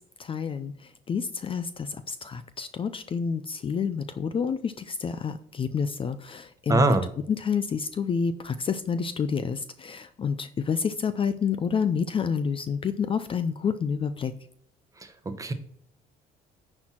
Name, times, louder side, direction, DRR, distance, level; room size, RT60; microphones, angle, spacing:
voice 1, 0.2-7.0 7.3-14.3, left 6 dB, 30° left, 12 dB, 0.5 m, -29 dB
voice 2, 6.7-7.1 15.4-15.5, right 3 dB, 20° right, 9 dB, 1.0 m, -22 dB
9.7 x 4.4 x 4.4 m, 0.67 s
cardioid pair, 110°, 17 cm